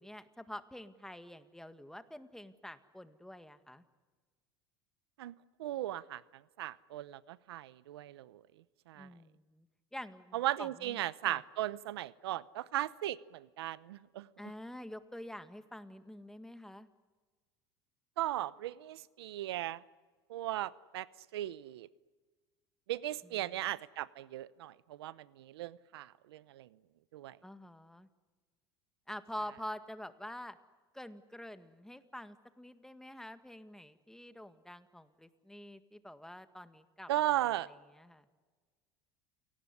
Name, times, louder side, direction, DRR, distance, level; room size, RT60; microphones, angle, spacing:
voice 1, 0.0-3.8 9.0-9.7 9.9-11.0 11.2-11.4 14.4-16.9 23.2-23.5 27.4-28.1 29.1-30.6 30.9-37.1 37.9-38.3, left 1 dB, 5° left, 10 dB, 1.8 m, -47 dB
voice 2, 5.6-6.2 6.6-8.4 8.9-9.1 10.3-14.3 18.2-19.8 20.3-21.1 21.3-21.9 22.9-26.7 27.1-27.4 37.1-37.7, right 14 dB, 90° right, 19 dB, 0.8 m, -37 dB
28.5 x 18.5 x 9.8 m, 1.4 s
supercardioid pair, 95°, 13 cm